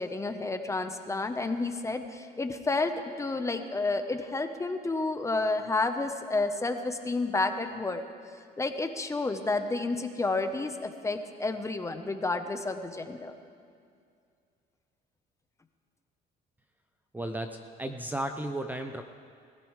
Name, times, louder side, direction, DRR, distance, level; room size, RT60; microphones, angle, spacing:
voice 1, 0.0-8.0 8.6-13.3, left 3 dB, 15° left, 7 dB, 0.9 m, -30 dB
voice 2, 17.1-19.0, right 1 dB, 10° right, 6 dB, 0.7 m, -34 dB
21.5 x 15.5 x 3.3 m, 2.3 s
cardioid pair, 110°, 17 cm